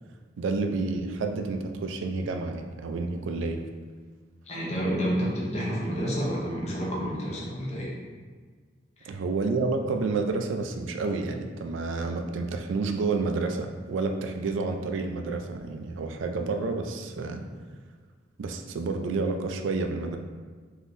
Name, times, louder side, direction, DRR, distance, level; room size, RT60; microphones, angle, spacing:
voice 1, 0.4-3.6 9.0-17.4 18.4-20.2, right 3 dB, 85° right, 5 dB, 0.3 m, -29 dB
voice 2, 4.5-7.9 9.0-9.1, equal, 35° left, -4 dB, 0.7 m, -29 dB
3.5 x 2.7 x 2.6 m, 1.5 s
head